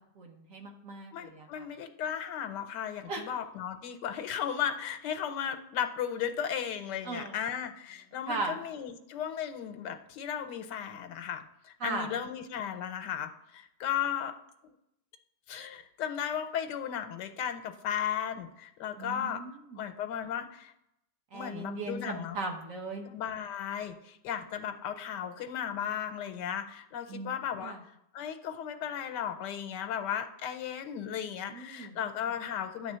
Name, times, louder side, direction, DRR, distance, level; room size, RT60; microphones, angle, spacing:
voice 1, 0.2-1.7 3.1-3.2 7.0-7.4 8.3-8.6 11.8-12.1 19.0-19.8 21.3-23.1 27.1-27.8 31.5-32.0, right 3 dB, 55° right, 2 dB, 1.3 m, -38 dB
voice 2, 1.1-14.4 15.5-19.4 19.8-20.7 21.3-22.4 23.0-27.8 28.1-33.0, left 9 dB, 80° left, 8 dB, 1.3 m, -35 dB
9.8 x 3.5 x 6.7 m, 0.78 s
omnidirectional pair, 1.8 m